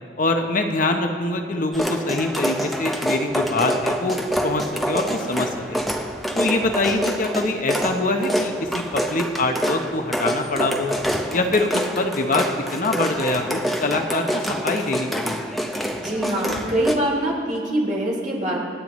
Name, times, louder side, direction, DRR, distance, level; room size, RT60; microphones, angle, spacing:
voice 1, 0.2-5.8 6.3-10.9 11.3-15.5, left 2 dB, 45° left, 4 dB, 0.8 m, -24 dB
sound 1, 1.7-17.0, equal, ahead, 0.7 m, -26 dB
voice 2, 16.0-18.6, right 1 dB, 40° right, -3 dB, 3.1 m, -24 dB
27.5 x 9.4 x 3.1 m, 2.5 s
head